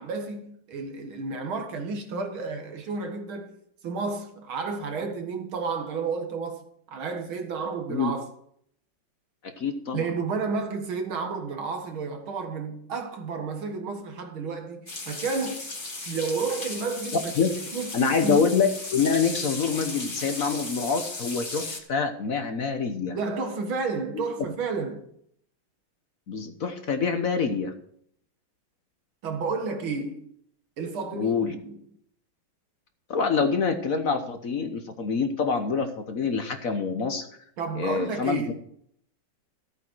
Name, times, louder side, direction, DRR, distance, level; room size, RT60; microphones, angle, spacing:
voice 1, 0.0-3.6 3.8-6.6 6.9-8.3 9.9-15.6 16.1-18.5 23.1-25.1 29.2-30.3 30.8-31.8 37.6-38.5, right 4 dB, 85° right, 2.5 m, -31 dB
voice 2, 9.4-10.1 17.4-17.5 17.9-23.2 24.1-24.2 26.3-27.7 31.1-31.5 33.1-37.3 37.7-38.5, left 5 dB, 50° left, 1.2 m, -26 dB
sound 1, 14.9-21.8, left 2 dB, 25° left, 1.9 m, -36 dB
14.0 x 8.5 x 4.6 m
omnidirectional pair, 2.2 m